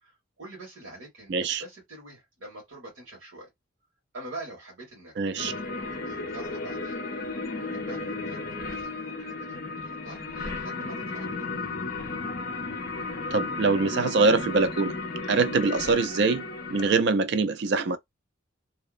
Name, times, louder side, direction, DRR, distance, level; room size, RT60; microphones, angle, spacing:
voice 1, 0.0-3.5 4.1-5.7 6.0-7.0 7.6-11.7 15.2-15.4, right 2 dB, 80° right, 1.4 m, -45 dB
voice 2, 1.3-1.6 5.2-5.5 13.3-14.9 15.3-16.4 16.7-18.0, right 4 dB, 55° right, 0.3 m, -23 dB
sound 1, 5.4-17.0, left 3 dB, 45° left, 0.6 m, -34 dB
2.7 x 2.0 x 2.4 m
head